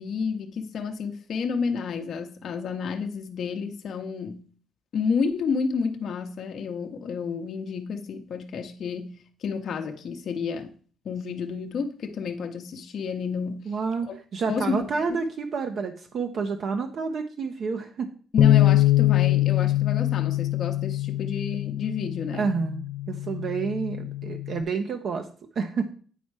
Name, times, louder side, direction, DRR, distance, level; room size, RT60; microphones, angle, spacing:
voice 1, 0.0-4.4 4.9-10.7 11.0-13.7 14.1-14.2 14.5-14.9 18.3-22.5, left 5 dB, 60° left, 0.7 m, -30 dB
voice 2, 13.7-18.1 22.3-25.3 25.6-25.8, right 5 dB, 60° right, 0.8 m, -29 dB
Bass guitar, 18.4-24.6, left 15 dB, 80° left, 0.4 m, -23 dB
9.1 x 4.3 x 4.7 m
cardioid pair, 90°, 0 cm